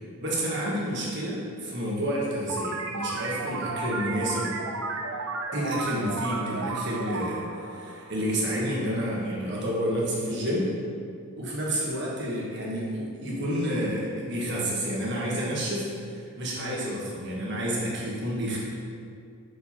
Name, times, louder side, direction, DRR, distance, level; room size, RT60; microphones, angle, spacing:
voice 1, 0.0-4.5 5.5-10.8 11.4-18.6, equal, 50° right, -5 dB, 1.5 m, -29 dB
sound 1, 2.5-8.7, right 3 dB, 75° right, 0.5 m, -33 dB
6.3 x 4.9 x 4.3 m, 2.4 s
head